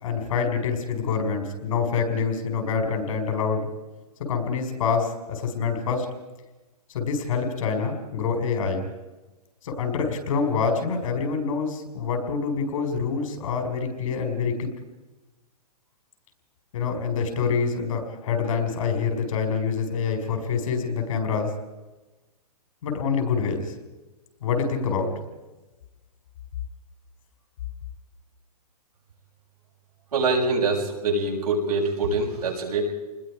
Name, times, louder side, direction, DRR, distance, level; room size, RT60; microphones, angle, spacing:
voice 1, 0.0-3.7 4.3-6.1 6.9-8.9 9.6-14.7 16.7-21.5 22.8-23.7 24.4-25.1, left 5 dB, 60° left, 5 dB, 4.9 m, -26 dB
voice 2, 30.1-32.9, right 3 dB, 90° right, -2 dB, 6.7 m, -24 dB
26.5 x 20.5 x 4.9 m, 1.1 s
hypercardioid pair, 145°, 20 cm